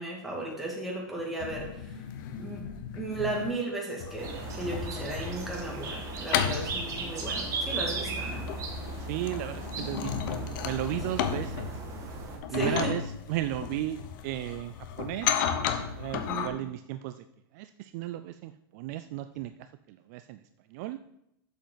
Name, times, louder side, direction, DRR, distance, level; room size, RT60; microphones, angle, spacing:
voice 1, 0.0-1.9 2.4-8.5 11.1-11.2 12.5-12.9 16.1-16.6, right 2 dB, ahead, -4 dB, 2.3 m, -35 dB
sound 1, 1.4-3.5 4.0-16.5, left 8 dB, 55° left, 0.9 m, -34 dB
sound 2, 4.2-12.4, right 3 dB, 25° right, 1.8 m, -36 dB
voice 2, 9.0-11.8 12.3-13.0 13.3-15.3 15.7-17.2 17.5-19.5 19.9-20.4 20.7-21.0, right 14 dB, 45° right, 10 dB, 0.4 m, -35 dB
8.4 x 7.2 x 4.0 m, 0.80 s
supercardioid pair, 145°, 13 cm